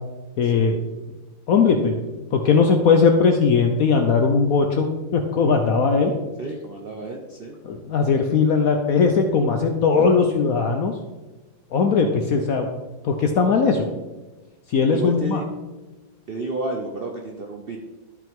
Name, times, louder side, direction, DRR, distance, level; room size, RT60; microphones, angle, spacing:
voice 1, 0.4-0.8 1.5-4.9 5.1-6.1 7.6-10.9 11.7-12.7 13.0-13.9 14.7-15.4, left 5 dB, 70° left, 4 dB, 0.9 m, -19 dB
voice 2, 6.4-7.5 14.9-15.4 16.3-17.8, right 2 dB, 90° right, 1 dB, 0.5 m, -31 dB
12.0 x 5.8 x 3.6 m, 1.2 s
omnidirectional pair, 2.1 m